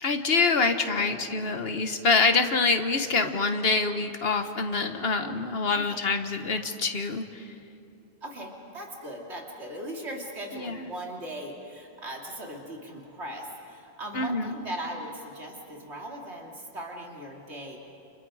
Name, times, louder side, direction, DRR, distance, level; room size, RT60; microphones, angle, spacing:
voice 1, 0.0-7.5 10.5-10.9 14.1-14.5, left 4 dB, 60° left, 7 dB, 1.6 m, -26 dB
voice 2, 1.1-1.4 5.7-6.0 8.2-17.8, right 1 dB, 80° right, -1 dB, 3.0 m, -39 dB
30.0 x 28.5 x 5.0 m, 2.8 s
omnidirectional pair, 1.1 m